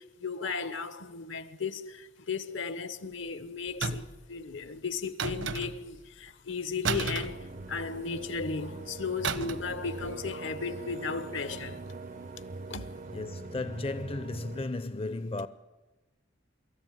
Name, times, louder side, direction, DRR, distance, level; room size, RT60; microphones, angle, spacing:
voice 1, 0.0-11.8 12.7-12.9, left 5 dB, 75° left, 1.2 m, -35 dB
sound 1, 3.8-4.3 5.2-6.0 6.8-8.0 9.2-9.8 10.0-10.2, right 4 dB, 70° right, 1.2 m, -33 dB
sound 2, 7.0-14.7, right 3 dB, 45° right, 0.6 m, -42 dB
voice 2, 13.1-15.5, left 2 dB, 30° left, 0.6 m, -34 dB
25.0 x 14.0 x 9.3 m
head